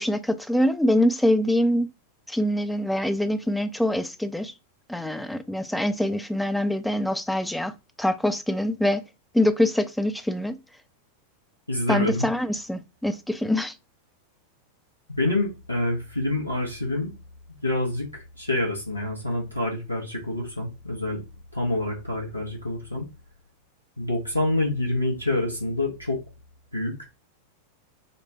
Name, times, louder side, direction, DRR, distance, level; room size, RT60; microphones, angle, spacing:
voice 1, 0.0-1.9 2.3-4.5 4.9-7.7 8.0-9.0 9.3-10.6 11.9-13.7, left 1 dB, 5° left, 0.4 m, -24 dB
voice 2, 11.7-12.3 15.1-17.1 17.6-21.2 21.5-23.1 24.0-26.2 26.7-27.0, left 2 dB, 85° left, 1.1 m, -27 dB
4.2 x 2.1 x 2.8 m
figure-of-eight pair, 90°, 0 cm